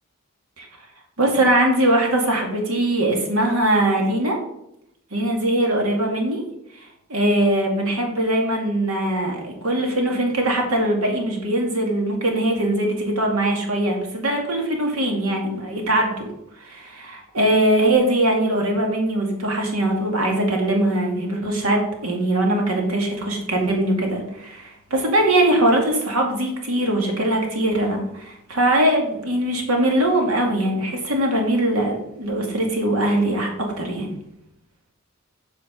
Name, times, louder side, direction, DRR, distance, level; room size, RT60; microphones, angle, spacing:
voice 1, 1.2-4.4 5.1-6.4 7.1-16.3 16.6-34.1, right 1 dB, 75° right, 1 dB, 2.2 m, -21 dB
8.0 x 5.0 x 6.7 m, 0.79 s
head